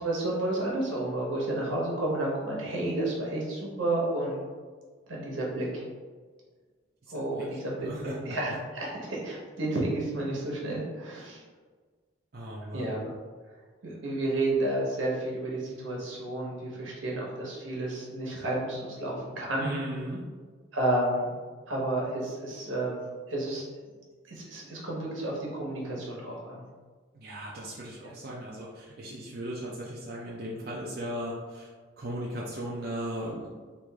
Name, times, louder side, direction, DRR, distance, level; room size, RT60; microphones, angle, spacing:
voice 1, 0.0-4.4 5.1-5.8 7.1-11.4 12.7-13.1 13.8-19.7 20.7-21.3 21.7-23.0 23.3-23.6 24.3-26.6 28.0-28.1, right 1 dB, 90° right, -3 dB, 1.0 m, -31 dB
voice 2, 7.8-8.2 12.3-13.0 19.6-20.2 27.1-31.7 32.0-33.5, right 1 dB, 50° right, -5 dB, 0.5 m, -37 dB
3.1 x 2.5 x 3.4 m, 1.5 s
head